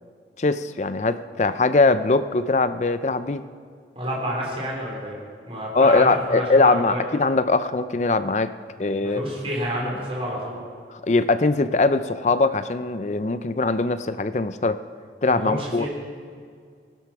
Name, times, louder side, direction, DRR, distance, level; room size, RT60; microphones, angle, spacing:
voice 1, 0.4-3.4 5.7-8.5 8.8-9.2 10.9-14.8 15.2-15.9, left 3 dB, 40° left, 12 dB, 0.5 m, -21 dB
voice 2, 4.0-5.1 5.5-7.0 9.0-10.6 15.3-15.9, equal, 35° right, -3 dB, 3.8 m, -29 dB
17.0 x 11.5 x 5.9 m, 2.1 s
head